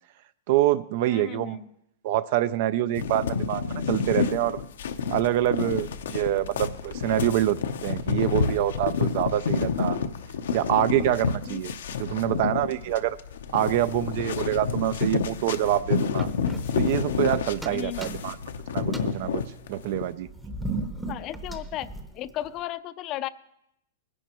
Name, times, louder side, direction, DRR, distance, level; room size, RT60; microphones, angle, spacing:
voice 1, 0.5-1.6 2.0-4.6 5.1-7.6 7.8-10.0 10.5-11.7 12.0-13.2 13.5-16.3 16.7-18.4 18.7-19.4 19.7-20.3, right 13 dB, 50° right, 16 dB, 0.4 m, -26 dB
voice 2, 1.1-1.7 11.5-11.6 17.7-18.1 21.1-21.9 22.1-23.3, left 13 dB, 35° left, 15 dB, 0.4 m, -34 dB
sound 1, 3.0-20.1, left 6 dB, 80° left, 0.7 m, -29 dB
sound 2, 16.2-17.3 17.6-18.5 18.8-22.6, right 2 dB, 5° right, 0.8 m, -37 dB
20.5 x 10.5 x 3.0 m, 0.79 s
supercardioid pair, 150°, 0 cm